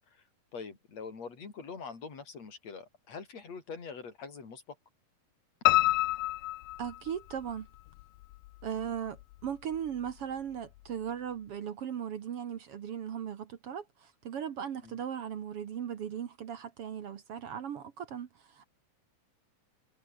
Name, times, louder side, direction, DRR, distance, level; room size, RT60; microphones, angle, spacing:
voice 1, 0.5-4.8 14.8-15.0, left 5 dB, 50° left, 5.9 m, -44 dB
Piano, 5.7-7.6 8.0-8.9 9.2-9.3 9.7-9.8 10.1-10.2, left 18 dB, 80° left, 2.3 m, -28 dB
voice 2, 6.8-7.7 8.6-18.6, right 8 dB, 55° right, 1.8 m, -38 dB
omnidirectional pair, 3.9 m